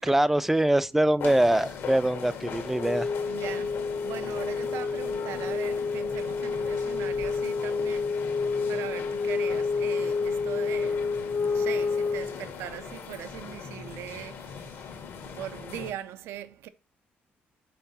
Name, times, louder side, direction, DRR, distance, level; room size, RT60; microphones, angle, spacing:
voice 1, 0.0-3.1, right 1 dB, 5° right, 0.3 m, -23 dB
sound 1, 1.2-15.9, left 6 dB, 75° left, 1.4 m, -40 dB
Wind instrument woodwind instrument, 2.6-12.4, left 4 dB, 45° left, 0.6 m, -29 dB
voice 2, 3.2-15.0 15.3-16.7, right 12 dB, 90° right, 0.5 m, -41 dB
5.9 x 4.6 x 4.1 m
cardioid pair, 105°, 4 cm